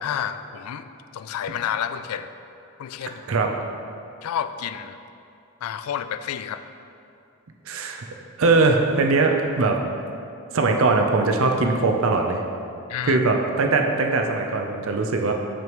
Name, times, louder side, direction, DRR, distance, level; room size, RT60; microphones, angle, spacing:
voice 1, 0.0-0.8 1.1-2.3 2.8-3.2 4.2-5.0 5.6-6.6 12.9-13.2, left 9 dB, 75° left, 11 dB, 0.3 m, -30 dB
voice 2, 7.7-8.0 8.4-9.8 10.5-12.4 13.1-15.3, right 3 dB, 60° right, 3 dB, 0.6 m, -21 dB
6.7 x 6.2 x 3.0 m, 2.6 s
head